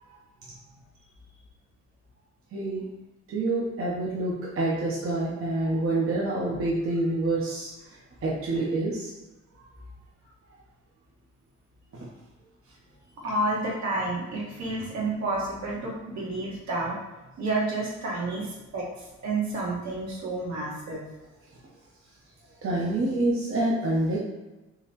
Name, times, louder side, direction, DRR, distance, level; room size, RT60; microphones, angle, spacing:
voice 1, 2.5-2.8 3.3-7.7 8.2-9.1 22.6-24.2, right 2 dB, 45° right, -6 dB, 0.8 m, -27 dB
voice 2, 13.2-16.9 17.4-18.8 19.2-21.0, right 2 dB, 65° right, -4 dB, 1.4 m, -30 dB
3.9 x 3.0 x 2.9 m, 1.1 s
cardioid pair, 90°, 30 cm